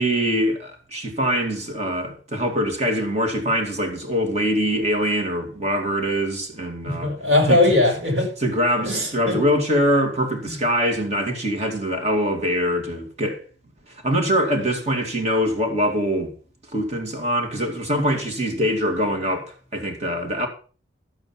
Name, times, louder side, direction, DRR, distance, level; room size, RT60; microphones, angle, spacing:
voice 1, 0.0-7.1 7.5-7.6 8.4-13.4 13.9-16.3 16.7-20.5, equal, 35° right, 2.4 m, -23 dB
voice 2, 6.8-8.3 8.8-9.4 10.4-10.6, left 2 dB, 65° right, 6.7 m, -20 dB
12.5 x 7.9 x 5.9 m
head